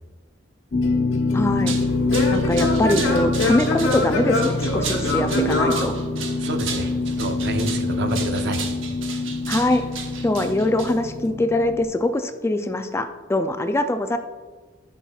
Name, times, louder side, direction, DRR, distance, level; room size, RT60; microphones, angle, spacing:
sound 1, 0.7-11.8, left 3 dB, 50° left, 0.7 m, -25 dB
Singing / Plucked string instrument, 0.8-6.7, left 2 dB, 75° left, 1.2 m, -25 dB
voice 1, 1.3-1.8 2.3-6.0 9.5-9.8 10.2-14.2, left 1 dB, 15° left, 8 dB, 0.3 m, -23 dB
sound 2, 1.4-11.3, right 6 dB, 75° right, 1.0 m, -35 dB
voice 2, 6.4-8.6, right 2 dB, 60° right, 7 dB, 0.7 m, -28 dB
13.0 x 5.8 x 2.3 m, 1.3 s
head